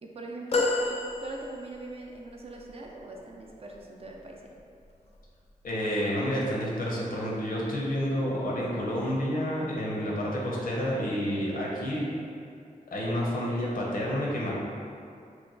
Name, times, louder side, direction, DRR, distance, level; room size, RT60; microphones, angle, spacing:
voice 1, 0.0-4.5, right 2 dB, 45° right, -1 dB, 0.5 m, -41 dB
sound 1, 0.5-1.9 2.7-2.8, left 3 dB, 50° left, 0.5 m, -29 dB
voice 2, 5.6-12.1 12.9-14.5, equal, 80° left, -4 dB, 0.8 m, -29 dB
3.1 x 2.2 x 3.8 m, 2.5 s
wide cardioid pair, 80°, 14 cm